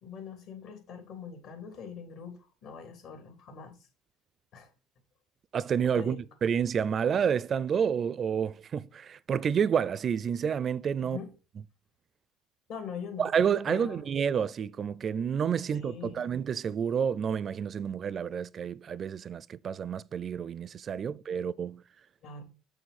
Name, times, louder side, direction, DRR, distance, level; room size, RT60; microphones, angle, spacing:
voice 1, 0.0-3.9 4.5-4.7 5.8-6.2 11.0-11.3 12.7-13.3 13.7-14.0 15.7-16.2 21.0-21.4 22.2-22.4, left 6 dB, 65° left, 3.1 m, -43 dB
voice 2, 5.5-6.2 6.4-11.2 13.2-21.8, right 7 dB, 45° right, 0.4 m, -29 dB
7.0 x 6.2 x 4.2 m
supercardioid pair, 80°, 0 cm